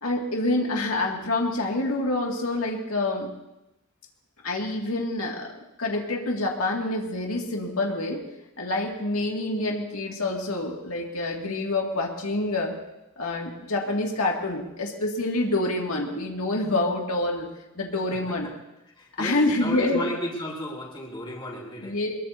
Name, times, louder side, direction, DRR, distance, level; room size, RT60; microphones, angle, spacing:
voice 1, 0.0-3.3 4.4-5.5 5.8-8.2 8.6-12.7 13.2-17.5 17.8-18.5 19.2-20.0 21.8-22.2, left 2 dB, 90° left, 0 dB, 2.3 m, -27 dB
voice 2, 18.1-18.5 19.0-22.0, equal, 20° left, -2 dB, 3.5 m, -34 dB
23.0 x 21.0 x 2.8 m, 0.92 s
head